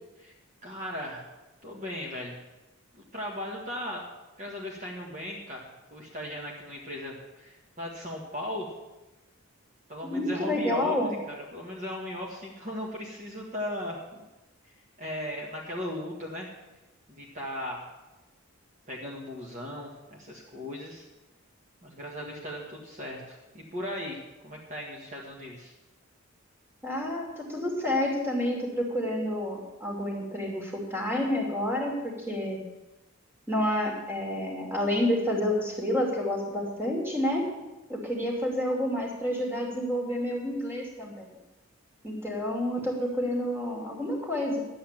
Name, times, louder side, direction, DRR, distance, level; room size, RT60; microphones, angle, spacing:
voice 1, 0.6-1.2 1.6-2.4 3.1-4.0 4.4-5.6 5.9-8.7 9.9-11.0 11.3-14.0 15.0-16.5 17.1-17.8 18.9-21.0 21.8-24.2 24.4-25.7, left 1 dB, 35° right, -2 dB, 1.7 m, -37 dB
voice 2, 10.1-11.1 26.8-32.6 33.5-37.4 37.9-41.3 42.0-44.6, left 1 dB, 10° right, -1 dB, 2.5 m, -29 dB
11.0 x 8.6 x 7.4 m, 1.1 s
head